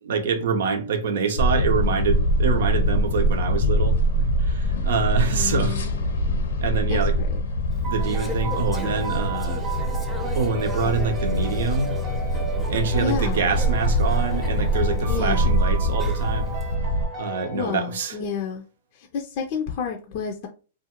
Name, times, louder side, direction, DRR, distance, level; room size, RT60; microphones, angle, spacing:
voice 1, 0.0-4.0 4.4-5.8 6.6-7.2 7.8-9.6 10.4-12.0 12.7-16.5 17.1-18.2, right 5 dB, 70° right, 0.6 m, -26 dB
sound 1, 1.4-17.1, equal, 80° left, 0.7 m, -23 dB
voice 2, 5.3-6.0 6.9-7.3 13.0-13.5 15.1-15.6 17.5-18.6 18.9-20.5, left 6 dB, 50° left, 0.4 m, -30 dB
Conversation / Chatter, 7.7-16.6, left 1 dB, 5° right, 0.7 m, -40 dB
sound 2, 7.8-18.2, right 4 dB, 35° right, 0.7 m, -36 dB
2.5 x 2.3 x 2.9 m
hypercardioid pair, 120°, 0 cm